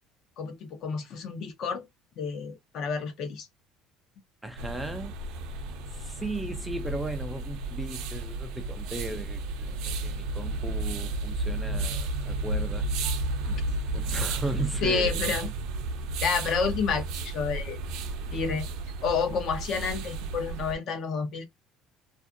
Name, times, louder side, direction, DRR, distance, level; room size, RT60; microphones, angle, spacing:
voice 1, 0.4-1.8 2.2-3.5 14.8-15.5 16.2-17.8 18.3-18.7 19.0-21.5, left 5 dB, 45° left, 0.7 m, -29 dB
voice 2, 4.4-5.1 5.9-12.9 13.9-15.2, right 2 dB, 5° right, 0.3 m, -36 dB
sound 1, 4.6-20.8, right 2 dB, 70° right, 0.5 m, -32 dB
2.5 x 2.4 x 2.5 m
cardioid pair, 160°, 0 cm